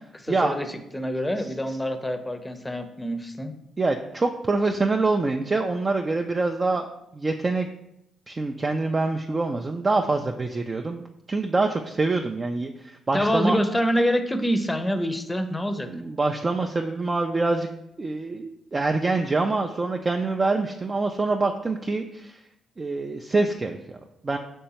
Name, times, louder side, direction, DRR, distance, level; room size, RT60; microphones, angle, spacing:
voice 1, 0.1-0.7 0.9-3.5 13.1-15.9, equal, 15° left, 8 dB, 0.6 m, -26 dB
voice 2, 3.8-7.7 8.3-13.6 15.8-17.7 18.0-22.4 22.8-24.4, right 3 dB, 35° right, 3 dB, 0.3 m, -25 dB
5.3 x 3.3 x 2.9 m, 0.83 s
hypercardioid pair, 45°, 0 cm